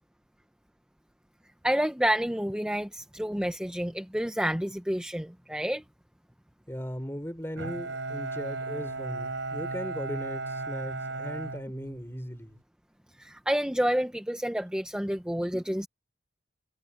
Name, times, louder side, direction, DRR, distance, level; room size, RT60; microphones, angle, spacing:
voice 1, 1.6-5.8 13.2-15.9, equal, 5° right, 0.7 m, -29 dB
voice 2, 6.7-12.6, equal, 10° left, 4.7 m, -38 dB
Bowed string instrument, 7.6-12.4, right 3 dB, 80° right, 4.5 m, -35 dB
head